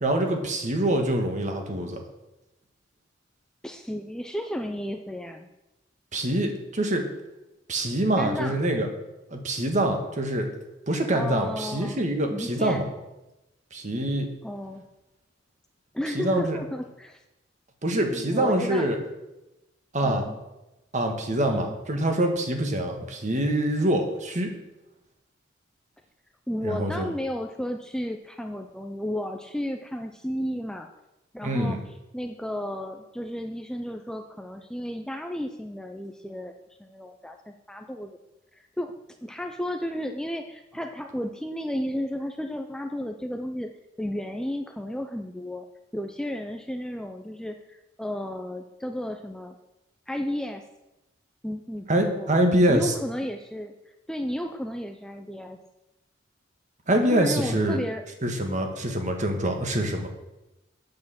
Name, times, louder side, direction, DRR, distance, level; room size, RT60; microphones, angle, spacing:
voice 1, 0.0-2.0 6.1-7.1 7.7-8.9 9.3-10.5 10.9-12.8 13.7-14.3 16.1-16.6 17.8-19.0 19.9-20.3 20.9-24.5 26.6-27.1 31.4-31.8 51.9-52.9 56.9-57.8 58.2-60.1, right 1 dB, 40° right, 4 dB, 1.6 m, -25 dB
voice 2, 3.6-5.5 8.2-8.6 11.1-12.0 12.3-12.8 14.4-14.8 15.9-17.2 18.1-18.9 20.0-20.4 21.5-21.8 26.5-30.9 31.3-36.5 36.8-38.2 38.5-38.9 39.2-43.7 44.0-45.7 45.9-49.6 50.1-50.6 51.4-53.7 54.1-55.6 57.1-58.0, equal, 5° left, 5 dB, 0.5 m, -33 dB
8.5 x 6.5 x 7.5 m, 0.97 s
head